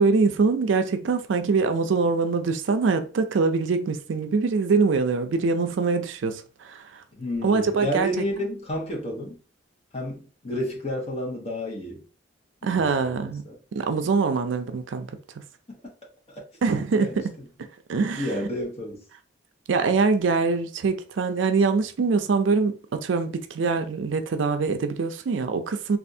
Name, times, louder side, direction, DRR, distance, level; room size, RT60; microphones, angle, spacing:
voice 1, 0.0-7.0 7.4-8.1 12.6-13.4 13.7-15.1 16.6-17.3 17.9-18.3 19.7-26.0, right 4 dB, 80° right, 0.4 m, -23 dB
voice 2, 7.1-9.4 9.9-12.0 12.6-13.6 15.8-15.9 16.9-17.2 18.1-19.0, equal, 35° left, 1.0 m, -31 dB
3.4 x 2.4 x 2.6 m
head